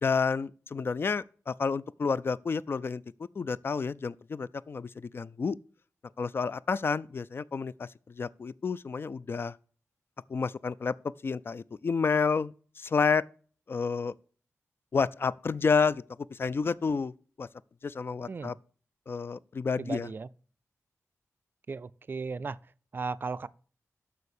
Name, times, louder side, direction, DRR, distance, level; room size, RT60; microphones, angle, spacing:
voice 1, 0.0-3.0 3.4-5.6 6.2-7.9 8.2-9.5 10.3-10.9 11.2-13.2 13.7-14.1 14.9-16.0 16.3-17.1 17.4-17.5 17.8-18.5 19.1-20.1, left 5 dB, 45° left, 0.3 m, -30 dB
voice 2, 19.8-20.3 21.7-22.6 22.9-23.5, right 4 dB, 40° right, 0.3 m, -35 dB
6.9 x 6.2 x 6.6 m
wide cardioid pair, 130°, 5 cm